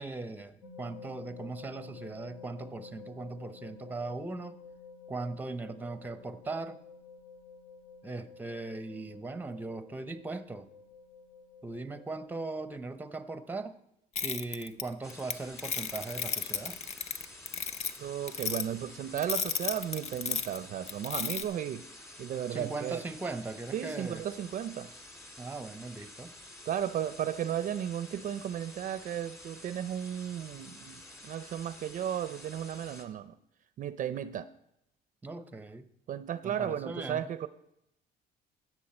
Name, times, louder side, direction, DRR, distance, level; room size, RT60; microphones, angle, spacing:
voice 1, 0.0-4.6 5.1-6.8 8.0-10.7 11.6-13.8 14.2-16.8 22.5-24.2 25.4-26.3 35.2-35.9 36.4-37.3, right 3 dB, 10° right, 11 dB, 0.6 m, -39 dB
sound 1, 0.6-12.8, left 5 dB, 80° left, 2.6 m, -51 dB
sound 2, 14.2-15.3 15.6-18.0 18.3-18.6 19.2-20.6 20.9-21.4, left 6 dB, 40° left, 0.6 m, -33 dB
sound 3, 15.0-33.0, left 1 dB, 15° left, 1.8 m, -50 dB
voice 2, 18.0-21.8 22.2-23.0 23.7-24.9 26.7-33.4 33.8-34.5 36.1-37.5, right 10 dB, 50° right, 13 dB, 0.5 m, -34 dB
16.0 x 6.4 x 4.3 m, 0.82 s
cardioid pair, 110°, 17 cm